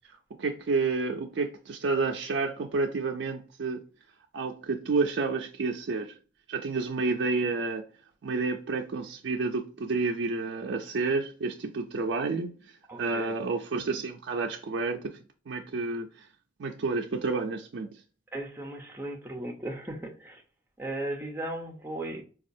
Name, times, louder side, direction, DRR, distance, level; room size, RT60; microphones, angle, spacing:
voice 1, 0.4-3.8 4.3-6.1 6.5-7.8 8.2-12.7 13.0-16.3 16.6-17.9, right 3 dB, 70° right, 0.4 m, -30 dB
voice 2, 12.9-13.4 18.3-20.4 20.8-22.2, right 1 dB, 10° right, 0.7 m, -36 dB
4.1 x 2.3 x 2.6 m
head